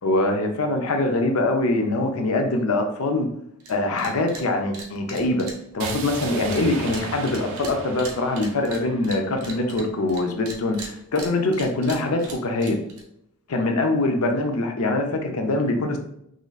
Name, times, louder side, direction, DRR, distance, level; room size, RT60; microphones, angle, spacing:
voice 1, 0.0-3.3 3.7-5.5 5.7-12.8 13.5-16.0, left 2 dB, 75° left, 4 dB, 0.6 m, -23 dB
sound 1, 3.6-3.7 4.0-4.4 4.7-10.2 10.5-13.0, right 3 dB, 80° right, 0.8 m, -38 dB
sound 2, 5.8-9.8, right 3 dB, 60° right, 0.4 m, -36 dB
3.8 x 3.1 x 2.3 m, 0.77 s
head